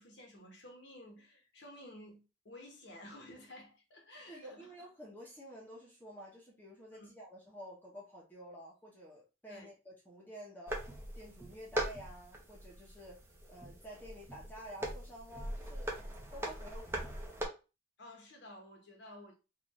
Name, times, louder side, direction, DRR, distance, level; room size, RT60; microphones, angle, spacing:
voice 1, 0.0-4.7 6.9-7.1 9.5-9.7 18.0-19.4, left 1 dB, 70° left, 1.2 m, -53 dB
voice 2, 4.3-10.8 11.1-13.2 13.5-15.9 16.3-17.4, equal, 10° left, 1.0 m, -51 dB
sound 1, 10.7-17.5, right 1 dB, 15° right, 0.8 m, -41 dB
3.9 x 2.6 x 3.1 m
head